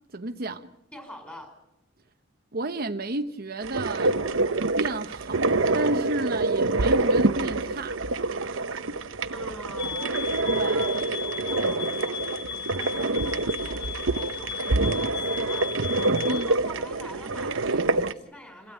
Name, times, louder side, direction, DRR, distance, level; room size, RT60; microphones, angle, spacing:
voice 1, 0.1-0.7 2.5-4.3 4.8-8.0 10.5-10.8 16.2-16.5, right 2 dB, 50° right, 1.0 m, -32 dB
voice 2, 0.9-1.5 9.3-12.2 12.7-18.7, equal, 10° left, 4.8 m, -45 dB
sound 1, 3.6-18.1, right 2 dB, 80° right, 0.9 m, -26 dB
sound 2, 9.8-16.5, left 8 dB, 60° left, 3.2 m, -36 dB
28.0 x 16.5 x 9.1 m
head